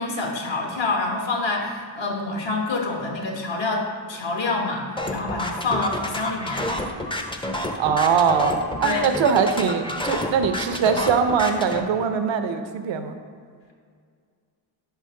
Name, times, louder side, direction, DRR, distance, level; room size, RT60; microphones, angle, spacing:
voice 1, 0.0-6.6 8.8-9.1, left 3 dB, 60° left, 1 dB, 1.3 m, -27 dB
sound 1, 5.0-11.8, left 1 dB, 10° left, 0.6 m, -29 dB
voice 2, 7.8-13.1, right 6 dB, 65° right, 7 dB, 0.7 m, -22 dB
5.6 x 4.9 x 3.7 m, 2.1 s
supercardioid pair, 50°, 50 cm